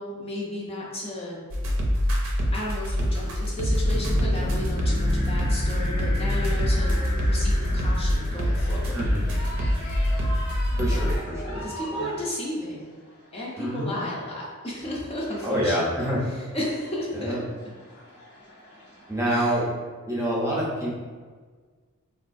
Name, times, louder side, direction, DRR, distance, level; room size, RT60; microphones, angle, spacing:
voice 1, 0.0-1.4 2.3-9.1 10.9-11.2 11.6-12.9 13.3-16.1 16.5-17.4 19.3-19.6, left 1 dB, 25° left, -5 dB, 0.5 m, -33 dB
sound 1, 1.5-11.2, equal, 65° right, 0.5 m, -25 dB
sound 2, 3.6-11.7, left 1 dB, 65° left, 0.7 m, -31 dB
sound 3, 6.2-13.9 14.7-19.3, equal, 90° left, 1.0 m, -43 dB
voice 2, 8.9-9.3 10.8-11.7 11.9-12.1 13.6-14.0 15.4-16.2 17.1-17.4 19.1-19.7 20.1-21.0, equal, 15° right, -5 dB, 0.6 m, -27 dB
3.9 x 2.3 x 2.5 m, 1.5 s
head